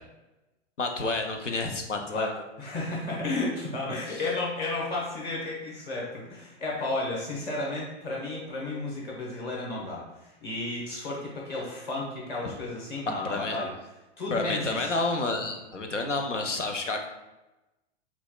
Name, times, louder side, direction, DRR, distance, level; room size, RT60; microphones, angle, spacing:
voice 1, 0.8-2.4 4.1-4.2 13.1-13.6 14.3-17.1, left 3 dB, 85° left, 4 dB, 0.6 m, -30 dB
voice 2, 2.6-13.7 14.2-14.9, left 2 dB, 30° left, -4 dB, 1.1 m, -33 dB
5.7 x 2.4 x 2.3 m, 1.0 s
figure-of-eight pair, 95°, 35 cm